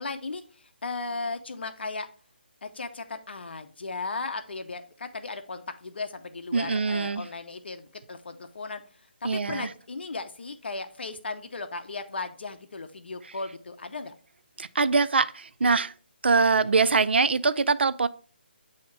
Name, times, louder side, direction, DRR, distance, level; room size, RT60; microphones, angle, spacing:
voice 1, 0.0-2.1 2.6-8.8 9.2-14.1 16.3-17.0, left 3 dB, 75° left, 0.7 m, -36 dB
voice 2, 6.5-7.2 9.2-9.7 14.6-15.9 16.2-18.1, right 4 dB, 75° right, 0.4 m, -23 dB
8.3 x 2.9 x 4.6 m
hypercardioid pair, 165°, 6 cm